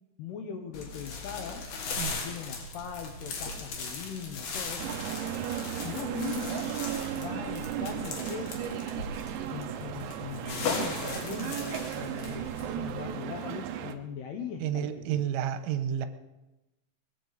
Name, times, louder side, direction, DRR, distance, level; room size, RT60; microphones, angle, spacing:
voice 1, 0.2-1.7 2.1-5.0 5.8-6.8 7.2-8.9 9.5-15.3, left 7 dB, 75° left, 5 dB, 2.4 m, -40 dB
sound 1, 0.7-13.0, left 4 dB, 55° left, 3.4 m, -38 dB
sound 2, 4.8-13.9, right 10 dB, 75° right, 2.8 m, -35 dB
voice 2, 14.6-16.1, right 10 dB, 90° right, 9 dB, 3.5 m, -30 dB
20.5 x 15.5 x 4.0 m, 1.0 s
omnidirectional pair, 5.7 m